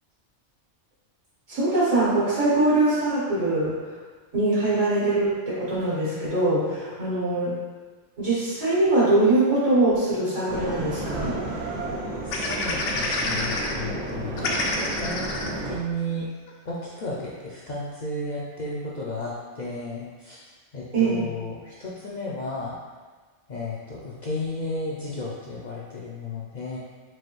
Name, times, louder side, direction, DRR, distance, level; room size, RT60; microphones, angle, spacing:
voice 1, 1.5-4.0 4.3-7.5 8.2-11.4 20.9-21.3, right 2 dB, 85° right, -10 dB, 2.1 m, -22 dB
sound 1, 10.5-15.8, right 1 dB, 60° right, 0.4 m, -32 dB
voice 2, 12.2-14.7 15.0-16.3 16.6-22.8 23.5-26.8, left 1 dB, 55° left, -6 dB, 0.5 m, -33 dB
sound 2, 12.3-13.7 14.1-14.2 14.4-15.5 16.1-16.2 16.5-16.7, left 2 dB, 75° left, 0.9 m, -28 dB
4.5 x 2.6 x 3.1 m, 1.4 s
omnidirectional pair, 1.3 m